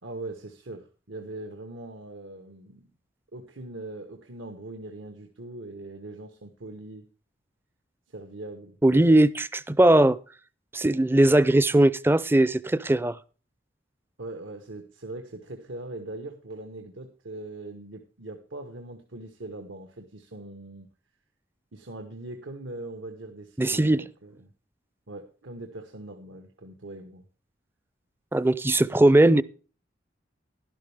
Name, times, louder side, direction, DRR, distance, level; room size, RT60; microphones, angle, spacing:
voice 1, 0.0-2.9 3.3-7.1 8.1-8.8 14.2-20.9 21.7-24.5 25.1-27.2, right 2 dB, 85° right, 1.3 m, -41 dB
voice 2, 8.8-10.2 10.7-13.2 23.6-24.0 28.3-29.4, right 1 dB, 10° right, 0.4 m, -19 dB
12.0 x 11.5 x 3.4 m
head